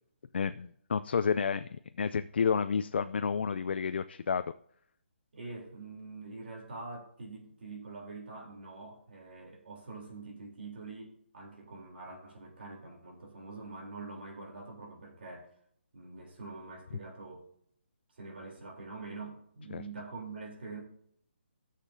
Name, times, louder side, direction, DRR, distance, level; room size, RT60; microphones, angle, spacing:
voice 1, 0.3-4.4 19.7-19.8, left 6 dB, 60° left, 11 dB, 0.4 m, -30 dB
voice 2, 5.3-15.5 15.9-17.5 18.1-20.8, right 3 dB, 60° right, -1 dB, 3.4 m, -45 dB
13.0 x 6.6 x 2.7 m, 0.65 s
hypercardioid pair, 170°, 6 cm